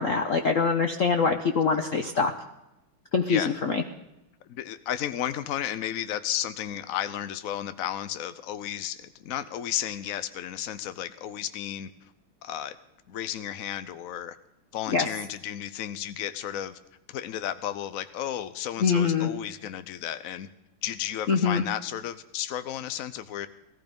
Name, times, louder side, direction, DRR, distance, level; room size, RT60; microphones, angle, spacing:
voice 1, 0.0-2.3 3.1-3.8 14.9-15.1 18.8-19.3 21.3-21.6, left 5 dB, 50° left, 5 dB, 1.0 m, -24 dB
voice 2, 4.5-11.9 12.4-12.8 13.1-14.4 14.7-16.8 17.1-20.5 20.8-23.5, left 11 dB, 70° left, 12 dB, 0.8 m, -33 dB
18.0 x 15.0 x 5.3 m, 0.91 s
omnidirectional pair, 2.3 m